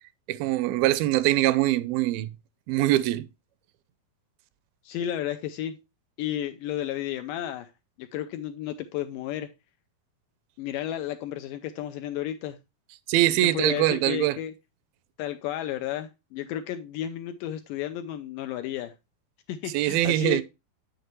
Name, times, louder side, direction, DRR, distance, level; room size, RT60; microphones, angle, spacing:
voice 1, 0.3-2.3 2.7-3.3 13.1-14.4 19.7-20.4, right 15 dB, 85° right, 2.3 m, -23 dB
voice 2, 4.8-5.8 6.2-7.7 8.0-9.5 10.6-12.6 13.4-14.5 15.2-18.9 19.5-20.4, left 11 dB, 80° left, 2.0 m, -32 dB
8.1 x 6.5 x 3.0 m
omnidirectional pair, 4.3 m